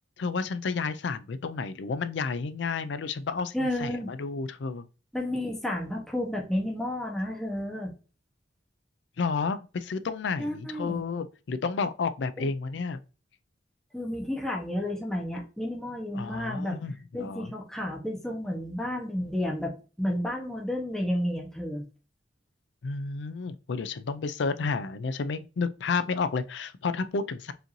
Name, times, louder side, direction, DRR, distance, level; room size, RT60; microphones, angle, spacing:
voice 1, 0.2-4.9 9.2-13.0 16.1-17.5 22.8-27.5, left 4 dB, 65° left, 0.4 m, -31 dB
voice 2, 3.5-4.1 5.1-7.9 10.4-11.0 12.4-12.5 13.9-16.8 17.1-21.8, left 1 dB, 5° left, 0.9 m, -31 dB
4.8 x 2.6 x 3.1 m
head